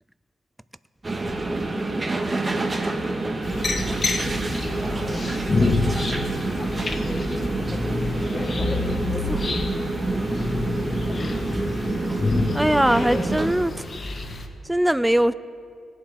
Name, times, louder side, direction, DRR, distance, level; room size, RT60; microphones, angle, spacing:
sound 1, 1.0-13.5, right 2 dB, 30° right, 1.3 m, -27 dB
sound 2, 3.4-14.5, left 2 dB, 45° left, 1.1 m, -28 dB
voice 1, 4.8-5.6 6.5-9.9, left 1 dB, 15° left, 5 dB, 1.1 m, -40 dB
voice 2, 12.5-13.7 14.7-15.3, right 1 dB, 5° right, 15 dB, 0.3 m, -20 dB
20.0 x 8.1 x 3.4 m, 2.3 s
cardioid pair, 65°, 0 cm